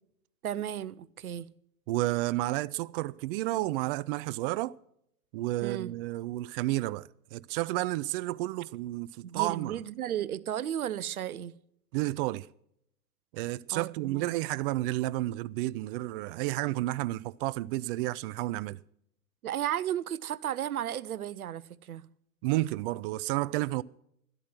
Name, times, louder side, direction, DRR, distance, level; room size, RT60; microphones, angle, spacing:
voice 1, 0.4-1.5 5.6-5.9 9.2-11.5 13.7-14.3 19.4-22.1, right 10 dB, 80° right, 0.8 m, -34 dB
voice 2, 1.9-4.8 5.3-9.8 11.9-12.5 13.3-18.8 22.4-23.8, right 17 dB, 40° right, 0.4 m, -31 dB
12.5 x 12.0 x 5.9 m
hypercardioid pair, 95°, 43 cm